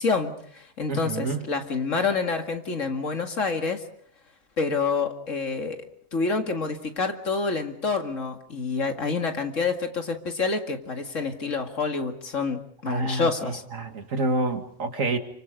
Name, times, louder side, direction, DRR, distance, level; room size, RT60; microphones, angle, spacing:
voice 1, 0.0-3.8 4.6-5.9 6.1-13.6, left 4 dB, 75° left, 5 dB, 2.5 m, -27 dB
voice 2, 0.9-1.5 12.9-15.2, right 2 dB, 80° right, 7 dB, 2.3 m, -28 dB
29.0 x 25.0 x 5.3 m, 0.63 s
omnidirectional pair, 1.3 m